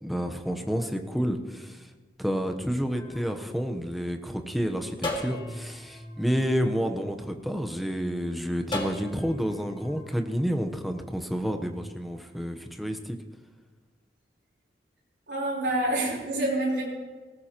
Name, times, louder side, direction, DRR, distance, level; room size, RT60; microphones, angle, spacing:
voice 1, 0.0-1.9 2.2-13.2, equal, ahead, 5 dB, 0.9 m, -30 dB
sound 1, 2.9-4.4 5.0-7.6 8.7-10.1, left 1 dB, 30° left, 1.9 m, -38 dB
voice 2, 15.3-16.8, right 1 dB, 70° right, -5 dB, 4.0 m, -27 dB
19.0 x 17.0 x 3.0 m, 1.3 s
head